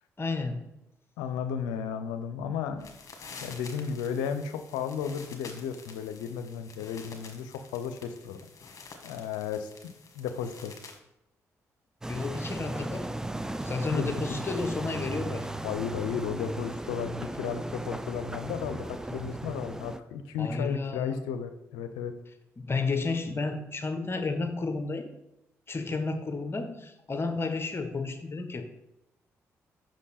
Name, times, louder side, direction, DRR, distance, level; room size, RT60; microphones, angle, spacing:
voice 1, 0.2-0.6 12.1-13.1 13.6-15.5 20.4-21.2 22.6-25.1 25.7-28.6, left 3 dB, 35° left, 7 dB, 1.0 m, -32 dB
voice 2, 1.2-2.9 3.4-8.4 9.0-10.7 13.9-14.2 15.6-22.1, left 7 dB, 85° left, 9 dB, 0.5 m, -34 dB
sound 1, 2.7-11.0, left 4 dB, 50° left, 1.3 m, -49 dB
sound 2, 12.0-20.0, right 1 dB, 10° right, 0.4 m, -36 dB
5.8 x 5.2 x 4.2 m, 0.87 s
hypercardioid pair, 50°, 7 cm